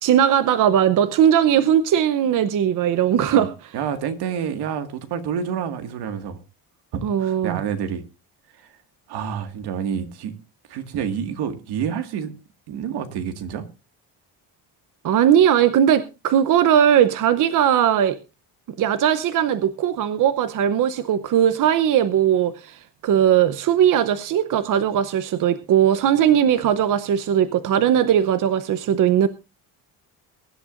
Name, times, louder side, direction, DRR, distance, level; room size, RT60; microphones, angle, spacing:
voice 1, 0.0-3.5 7.0-7.6 15.0-18.2 18.8-29.3, right 9 dB, 50° right, 0.8 m, -19 dB
voice 2, 3.7-6.4 6.9-8.0 8.6-8.7 9.1-10.3 10.7-12.3 12.7-13.6, right 8 dB, 75° right, 2.0 m, -28 dB
23.0 x 11.0 x 2.6 m
cardioid pair, 155°, 40 cm